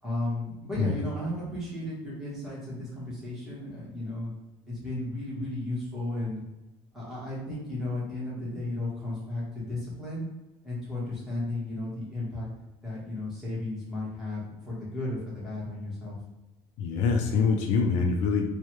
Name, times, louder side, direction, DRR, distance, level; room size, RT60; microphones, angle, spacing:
voice 1, 0.0-4.3 4.7-6.4 6.9-10.3 10.6-12.5 12.8-16.2, left 1 dB, 5° right, -8 dB, 1.1 m, -34 dB
voice 2, 16.8-18.4, left 5 dB, 70° left, 3 dB, 0.4 m, -24 dB
3.2 x 2.2 x 2.9 m, 1.0 s
cardioid pair, 175°, 12 cm